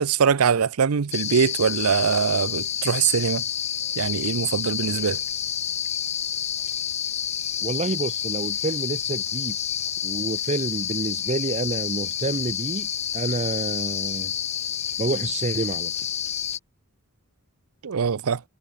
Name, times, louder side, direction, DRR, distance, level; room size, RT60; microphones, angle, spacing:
voice 1, 0.0-3.4 4.0-5.2 17.8-18.4, right 6 dB, 85° right, 0.6 m, -22 dB
sound 1, 1.1-16.6, left 9 dB, 30° left, 0.8 m, -29 dB
voice 2, 7.6-9.6 10.0-14.3 15.0-15.9, right 2 dB, 30° right, 0.7 m, -28 dB
head